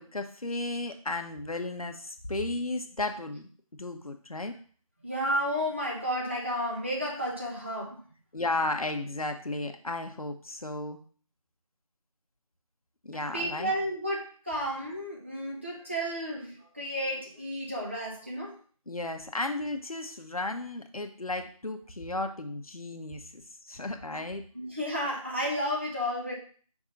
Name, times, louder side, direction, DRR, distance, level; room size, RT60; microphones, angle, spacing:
voice 1, 0.0-3.5 3.8-4.5 8.3-11.0 13.0-13.7 18.9-24.5, left 2 dB, 80° left, 5 dB, 1.1 m, -34 dB
voice 2, 5.0-8.0 13.1-18.5 24.5-26.3, equal, 20° right, -4 dB, 1.0 m, -32 dB
5.4 x 3.7 x 5.1 m, 0.43 s
figure-of-eight pair, 175°, 18 cm